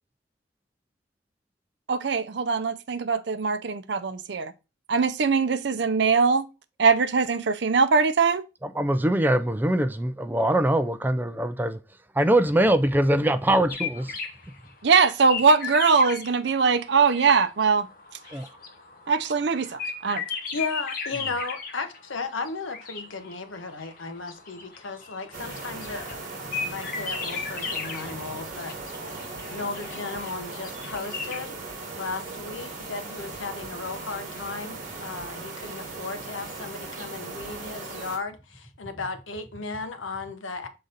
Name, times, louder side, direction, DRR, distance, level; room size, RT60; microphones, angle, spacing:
voice 1, 1.9-4.5 4.9-6.5 6.8-8.4 14.8-17.9 19.1-20.2, right 5 dB, 60° right, 0.5 m, -22 dB
voice 2, 8.6-11.8 12.1-14.2 18.3-18.5, right 1 dB, 10° right, 0.4 m, -23 dB
sound 1, 13.7-16.4 16.6-31.4, left 5 dB, 45° left, 1.1 m, -36 dB
voice 3, 20.5-26.2 26.6-29.2 29.5-40.7, left 4 dB, 80° left, 0.9 m, -35 dB
sound 2, 25.3-38.2, right 3 dB, 40° right, 1.4 m, -38 dB
6.6 x 3.9 x 3.9 m
head